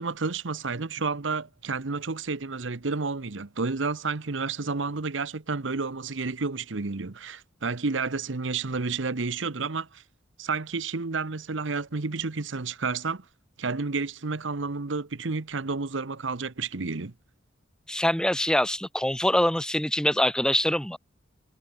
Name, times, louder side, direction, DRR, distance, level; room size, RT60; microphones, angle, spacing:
voice 1, 0.0-10.0 10.4-13.2 13.6-17.1, right 4 dB, 80° right, 1.0 m, -30 dB
voice 2, 17.9-21.0, left 1 dB, 5° left, 1.1 m, -24 dB
head